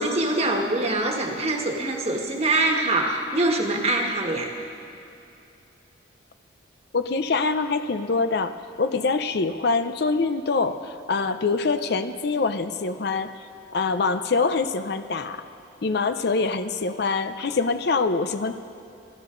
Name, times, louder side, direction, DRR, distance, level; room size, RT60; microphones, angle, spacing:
voice 1, 0.0-4.5, right 2 dB, 35° right, 1 dB, 1.5 m, -24 dB
voice 2, 6.9-13.3 13.7-15.4 15.8-18.5, left 4 dB, 55° left, 10 dB, 0.6 m, -24 dB
28.0 x 12.5 x 3.9 m, 2.7 s
head